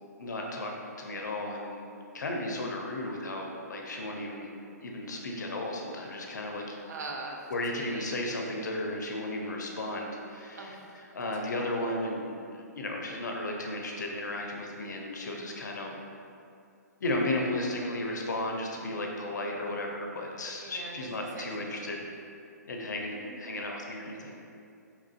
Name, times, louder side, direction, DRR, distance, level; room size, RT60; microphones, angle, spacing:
voice 1, 0.2-1.8 2.1-4.5 4.8-6.8 7.5-12.4 12.8-16.0 17.0-22.1 22.7-24.4, left 1 dB, 75° left, 0 dB, 0.5 m, -34 dB
voice 2, 6.9-8.4 10.6-11.0 20.5-20.9 21.4-21.5 21.8-22.0 23.1-23.6, right 3 dB, 65° right, 0 dB, 0.5 m, -42 dB
3.0 x 2.4 x 2.4 m, 2.5 s
hypercardioid pair, 135°, 10 cm